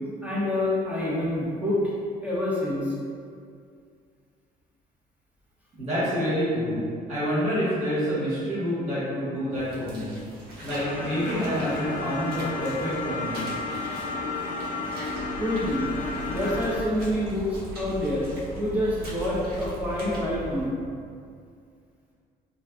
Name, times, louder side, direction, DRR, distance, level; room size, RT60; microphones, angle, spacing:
voice 1, 0.2-1.8 2.2-2.9 15.4-15.9 16.3-18.2 18.5-20.7, left 1 dB, 10° right, -7 dB, 0.6 m, -27 dB
voice 2, 5.8-6.8 7.1-10.2 10.6-13.4, equal, 40° right, -12 dB, 1.2 m, -27 dB
sound 1, 9.5-20.2, equal, 65° right, 0.7 m, -44 dB
sound 2, 10.8-16.8, left 3 dB, 45° left, 0.4 m, -32 dB
sound 3, 15.1-20.7, equal, 15° left, 1.0 m, -39 dB
2.5 x 2.4 x 2.3 m, 2.3 s
cardioid pair, 110°, 17 cm